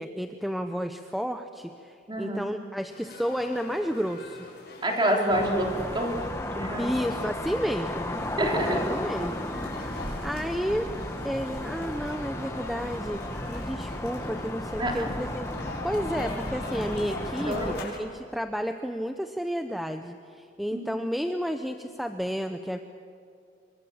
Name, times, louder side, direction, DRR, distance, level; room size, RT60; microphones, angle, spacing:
voice 1, 0.0-4.5 6.8-8.2 8.7-9.5 9.8-10.9 11.2-13.2 13.5-15.5 15.8-22.8, equal, ahead, 6 dB, 0.8 m, -31 dB
voice 2, 2.1-2.4 4.8-5.7 5.9-6.2 6.5-6.9 8.4-8.8 14.8-14.9 17.4-17.8 20.7-20.9, right 1 dB, 25° right, 0 dB, 3.9 m, -26 dB
sound 1, 2.9-18.0, left 2 dB, 60° left, 6.4 m, -42 dB
sound 2, 5.3-17.9, left 1 dB, 15° left, 1.2 m, -34 dB
26.0 x 24.0 x 7.3 m, 2.6 s
head